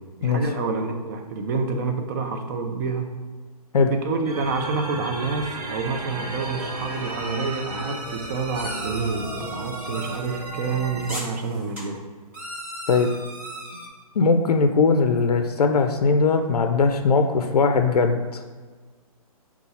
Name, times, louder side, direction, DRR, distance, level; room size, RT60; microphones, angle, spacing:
voice 1, 0.2-3.1 3.9-12.0, right 4 dB, 30° right, 4 dB, 0.5 m, -28 dB
sound 1, 4.2-11.2, right 2 dB, 85° right, 0.9 m, -34 dB
sound 2, 8.5-10.2 11.1-11.8 12.3-13.9, right 1 dB, 10° right, 1.0 m, -36 dB
voice 2, 14.2-18.4, left 4 dB, 90° left, 6 dB, 0.4 m, -20 dB
5.5 x 2.4 x 4.0 m, 1.4 s
hypercardioid pair, 145°, 19 cm